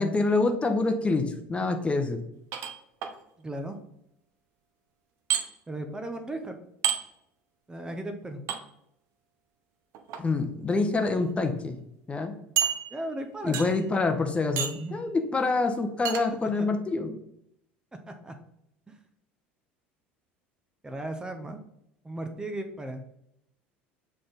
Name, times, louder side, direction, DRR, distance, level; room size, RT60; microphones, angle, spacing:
voice 1, 0.0-2.2 10.2-11.8 12.1-12.3 13.4-17.2, left 3 dB, 20° left, 6 dB, 0.8 m, -26 dB
sound 1, 2.5-3.1 5.3-5.4 6.8-7.0 8.5-8.6 9.9-10.2 11.0-11.1 11.4-11.5 12.6-13.2 13.5-13.9 14.6-14.9 16.0-16.2, right 9 dB, 55° right, 0.7 m, -29 dB
voice 2, 3.4-3.8 5.7-6.6 7.7-8.4 12.9-13.8 14.7-15.0 16.5-16.7 18.1-18.3 18.9-19.0 20.8-21.6 22.0-23.0, right 1 dB, 15° right, 6 dB, 0.7 m, -36 dB
6.8 x 3.7 x 3.9 m, 0.76 s
figure-of-eight pair, 70°, 6 cm